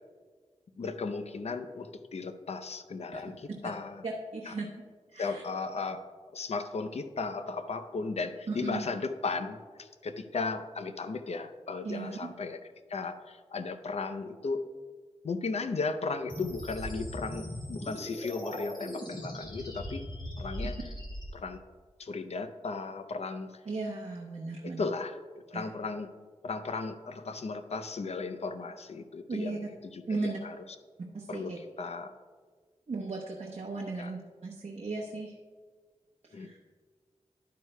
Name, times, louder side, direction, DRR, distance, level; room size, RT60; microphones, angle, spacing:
voice 1, 0.8-4.0 4.5-4.6 5.2-6.0 6.3-12.6 12.9-14.7 15.2-20.1 20.4-20.7 21.3-21.6 22.0-23.6 24.6-25.2 25.5-26.1 26.4-29.6 29.9-30.6 31.3-32.1 34.0-34.1 36.3-36.6, left 4 dB, 60° left, 9 dB, 0.6 m, -36 dB
voice 2, 4.0-4.7 5.1-5.4 8.5-8.8 11.8-12.3 23.7-24.8 25.5-25.7 29.3-29.7 30.1-30.4 31.1-31.6 32.9-35.4 36.2-36.6, right 3 dB, 60° right, -2 dB, 0.9 m, -36 dB
sound 1, 16.3-21.3, equal, 40° left, 2.0 m, -39 dB
11.5 x 9.3 x 2.2 m, 1.6 s
wide cardioid pair, 80°, 12 cm